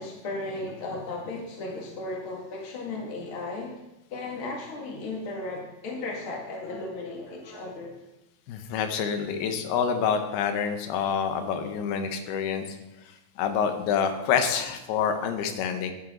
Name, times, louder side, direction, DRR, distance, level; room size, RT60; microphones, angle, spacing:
voice 1, 0.0-3.8 4.1-8.0, left 2 dB, 40° left, -1 dB, 2.3 m, -35 dB
voice 2, 8.5-12.8 13.0-15.9, left 7 dB, 90° left, 7 dB, 2.9 m, -27 dB
11.0 x 9.2 x 3.8 m, 0.93 s
omnidirectional pair, 4.5 m